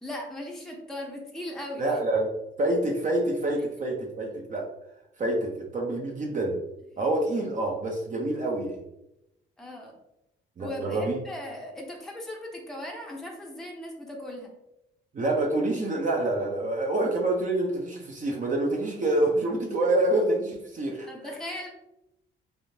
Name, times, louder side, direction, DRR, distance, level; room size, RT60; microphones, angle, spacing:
voice 1, 0.0-1.8 9.6-10.0 10.6-14.5 21.1-21.7, left 1 dB, ahead, -1 dB, 0.6 m, -38 dB
voice 2, 1.8-2.3 2.6-4.6 5.2-6.6 7.0-8.8 10.6-11.2 15.1-21.1, right 2 dB, 40° right, -1 dB, 0.7 m, -27 dB
3.5 x 2.4 x 2.7 m, 0.87 s
cardioid pair, 90°, 20 cm